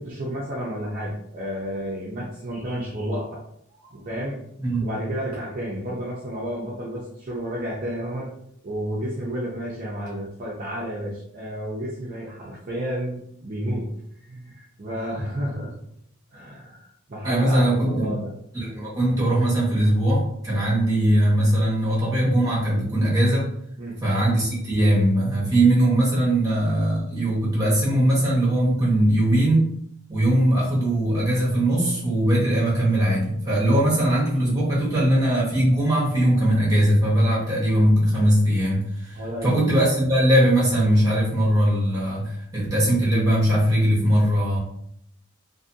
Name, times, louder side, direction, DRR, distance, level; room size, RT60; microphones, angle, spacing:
voice 1, 0.0-3.4 3.7-4.4 4.8-8.3 8.6-13.9 14.2-15.7 16.3-18.3 23.8-24.0 39.1-39.8, equal, 40° right, -6 dB, 0.5 m, -31 dB
voice 2, 17.2-18.1 18.5-23.5 24.0-29.7 30.1-44.6, right 1 dB, 15° right, -5 dB, 1.0 m, -20 dB
2.6 x 2.6 x 2.6 m, 0.71 s
head